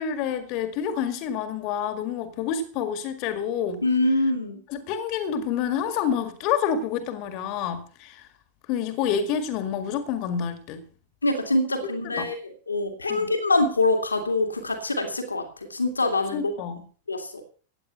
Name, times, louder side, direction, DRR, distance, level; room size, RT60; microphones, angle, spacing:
voice 1, 0.0-3.8 4.7-8.3 8.7-10.9 12.1-12.3 13.1-13.3 16.3-16.9, left 8 dB, 40° left, 9 dB, 1.9 m, -28 dB
voice 2, 3.8-4.6 11.2-16.5 17.1-17.4, left 2 dB, 80° left, 6 dB, 2.3 m, -25 dB
16.5 x 9.7 x 5.6 m, 0.41 s
figure-of-eight pair, 90°, 0 cm